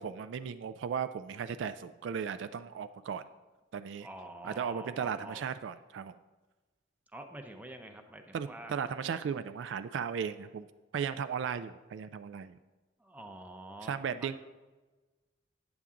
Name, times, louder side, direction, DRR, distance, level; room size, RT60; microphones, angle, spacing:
voice 1, 0.0-3.2 3.7-4.1 4.4-6.1 8.3-10.7 10.9-12.6 13.9-14.4, right 7 dB, 65° right, 12 dB, 0.3 m, -36 dB
voice 2, 4.0-5.5 7.1-8.8 9.1-9.2 13.0-14.4, right 2 dB, 10° right, 5 dB, 0.6 m, -47 dB
9.0 x 7.1 x 3.7 m, 1.2 s
head